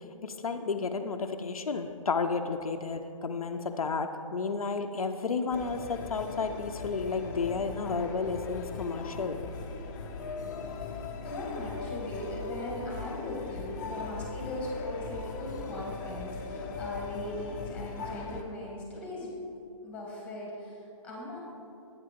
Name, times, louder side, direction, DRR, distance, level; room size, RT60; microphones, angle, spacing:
voice 1, 0.2-9.4, left 4 dB, 85° left, 7 dB, 0.5 m, -32 dB
sound 1, 5.5-18.4, left 4 dB, 30° left, 0.6 m, -39 dB
voice 2, 11.2-19.5 19.8-21.4, left 1 dB, 5° left, -3 dB, 1.9 m, -39 dB
8.7 x 4.8 x 5.3 m, 2.7 s
hypercardioid pair, 140°, 18 cm